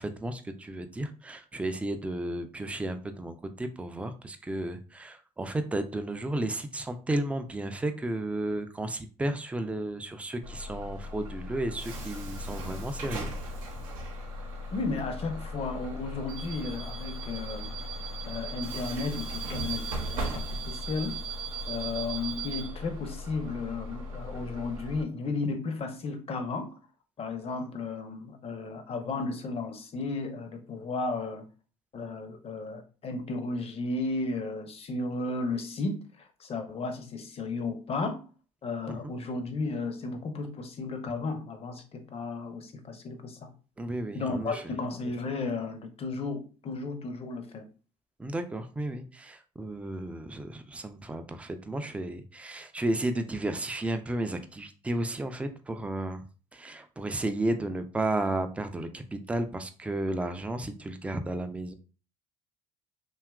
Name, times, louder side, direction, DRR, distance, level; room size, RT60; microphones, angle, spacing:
voice 1, 0.0-13.3 38.9-39.1 43.8-44.6 48.2-56.2 56.5-61.7, right 1 dB, 10° right, 8 dB, 0.3 m, -33 dB
Bus / Alarm, 10.4-25.0, right 1 dB, 85° right, 0.7 m, -37 dB
voice 2, 14.7-17.7 18.3-21.2 21.7-26.8 27.2-31.5 31.9-38.2 38.6-43.5 44.1-47.6, left 3 dB, 35° left, 7 dB, 0.6 m, -34 dB
2.7 x 2.3 x 2.3 m, 0.36 s
hypercardioid pair, 65°, 17 cm